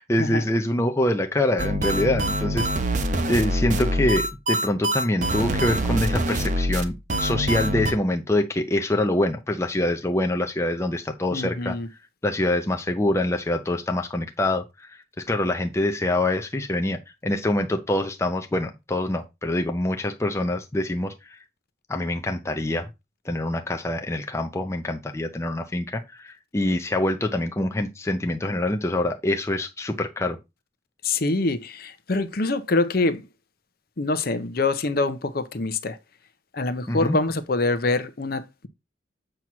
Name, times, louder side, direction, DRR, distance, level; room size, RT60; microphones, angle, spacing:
voice 1, 0.0-2.7 3.3-11.7 12.2-21.4 21.9-22.9 23.2-30.4 36.9-37.2, left 1 dB, 15° left, 0.5 m, -25 dB
sound 1, 1.6-7.9, right 1 dB, 40° right, 0.8 m, -25 dB
voice 2, 11.3-11.9 31.0-33.3 34.0-36.0 36.5-38.7, left 3 dB, 50° left, 0.7 m, -25 dB
7.7 x 2.9 x 5.9 m
head